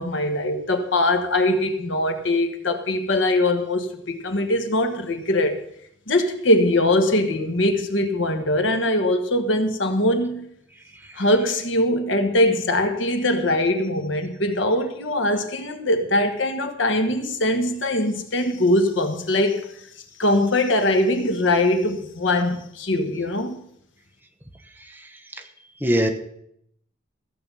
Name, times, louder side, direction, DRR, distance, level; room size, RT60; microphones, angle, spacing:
voice 1, 0.0-5.6 6.1-10.5 11.2-19.7 20.2-23.6, left 1 dB, 80° left, 1.4 m, -22 dB
voice 2, 24.8-25.4 25.8-26.1, equal, 10° right, 1.1 m, -25 dB
14.5 x 7.7 x 5.5 m
head